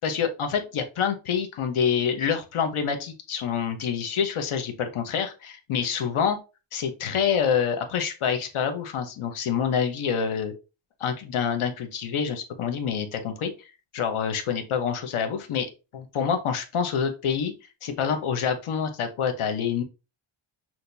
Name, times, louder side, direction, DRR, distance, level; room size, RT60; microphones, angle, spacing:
voice 1, 0.0-6.4 6.7-10.5 11.0-13.5 13.9-15.7 15.9-17.5 17.8-19.8, left 7 dB, 75° left, 6 dB, 1.1 m, -27 dB
6.4 x 2.9 x 2.7 m, 0.30 s
wide cardioid pair, 155°, 49 cm